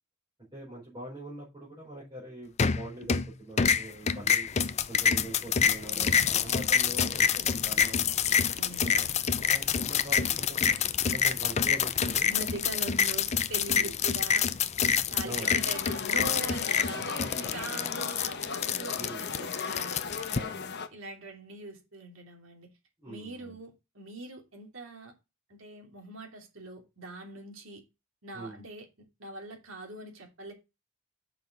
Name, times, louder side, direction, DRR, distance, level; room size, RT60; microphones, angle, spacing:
voice 1, 0.5-4.5 4.9-8.1 8.8-9.1 9.4-10.8 11.1-12.3 13.8-13.9 15.2-15.5 17.0-17.5 18.9-19.3 20.3-20.8 23.0-23.5 28.3-28.6, right 1 dB, 20° right, 4.6 m, -43 dB
sound 1, 2.6-3.3 3.6-20.4, left 7 dB, 30° left, 0.5 m, -27 dB
voice 2, 5.8-6.7 8.5-9.2 12.2-14.5 15.1-20.0 20.9-22.7 23.1-25.1 25.5-27.8 28.2-28.9 29.2-30.5, right 2 dB, 60° right, 3.0 m, -42 dB
sound 2, 15.4-20.9, left 5 dB, 50° left, 1.0 m, -37 dB
7.3 x 5.6 x 5.3 m
head